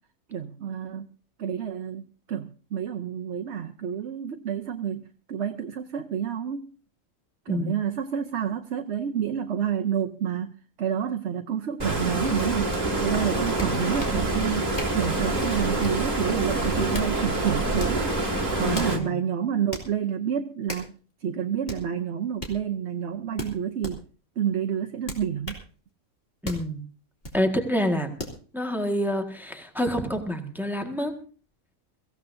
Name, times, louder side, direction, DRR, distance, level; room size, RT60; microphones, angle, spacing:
voice 1, 0.3-1.1 1.4-5.0 5.3-6.7 7.5-18.1 18.6-20.9 21.2-24.0 24.4-25.6, right 8 dB, 60° right, 6 dB, 1.0 m, -29 dB
Stream, 11.8-19.0, right 2 dB, 30° right, 2.2 m, -26 dB
sound 1, 12.7-12.8 13.6-14.2 14.8-15.0 15.8-16.1 16.7-17.1 17.8-18.0 18.7-19.0 19.7-19.9 20.7-20.9 21.7-21.8 22.4-22.6 23.4-24.0 25.1-25.7 26.4-26.7 27.2-27.4 28.2-28.4, left 1 dB, 45° left, 3.0 m, -36 dB
voice 2, 18.6-19.2 26.4-26.8 27.3-28.1 28.5-31.1, equal, ahead, 4 dB, 1.6 m, -27 dB
23.5 x 15.5 x 2.7 m, 0.38 s
omnidirectional pair, 1.4 m